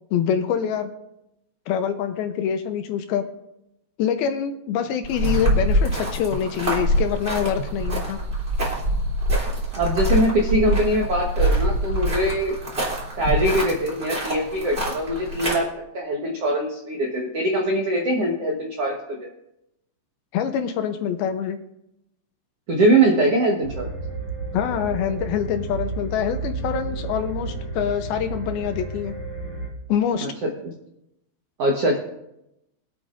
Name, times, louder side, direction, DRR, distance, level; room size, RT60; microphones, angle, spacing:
voice 1, 0.1-0.9 1.7-3.2 4.0-8.2 20.3-21.6 24.5-29.1 29.9-30.3, left 8 dB, 80° left, 7 dB, 2.5 m, -25 dB
sound 1, 5.0-15.6, right 1 dB, 20° right, 2.7 m, -24 dB
voice 2, 9.7-12.5 13.2-15.6 15.9-19.3 22.7-23.9 30.2-30.5 31.6-32.0, right 1 dB, 75° right, -2 dB, 1.4 m, -22 dB
sound 2, 23.6-29.7, right 3 dB, 25° left, 4.0 m, -32 dB
24.5 x 8.4 x 2.6 m, 0.84 s
omnidirectional pair, 5.0 m